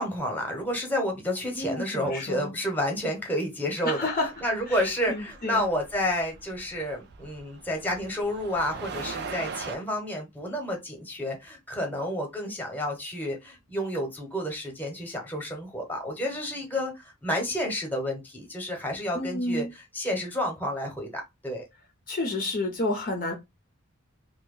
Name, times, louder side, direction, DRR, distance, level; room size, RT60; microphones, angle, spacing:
voice 1, 0.0-4.1 4.4-19.6 19.9-21.6, equal, 10° left, 0.9 m, -30 dB
voice 2, 1.6-2.5 3.8-4.3 4.7-5.6 19.1-19.7 22.1-23.3, left 2 dB, 40° left, 0.6 m, -30 dB
sound 1, 4.0-9.8, right 5 dB, 50° right, 0.5 m, -41 dB
2.8 x 2.2 x 3.7 m
head